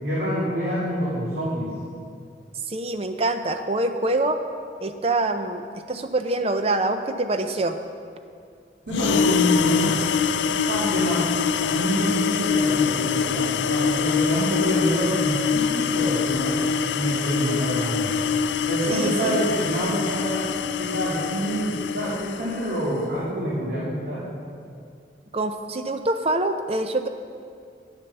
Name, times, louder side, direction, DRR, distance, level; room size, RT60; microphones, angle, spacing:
voice 1, 0.0-1.7 8.9-10.0 10.7-11.2 11.6-16.6 16.9-18.1 18.7-20.4 20.8-24.2, equal, 70° right, -8 dB, 2.2 m, -26 dB
voice 2, 2.7-4.4 4.8-7.8 18.9-19.4 25.3-27.1, right 2 dB, 35° right, 7 dB, 0.6 m, -25 dB
sound 1, 8.9-22.8, left 6 dB, 85° left, 0.4 m, -24 dB
9.8 x 7.4 x 6.8 m, 2.3 s
head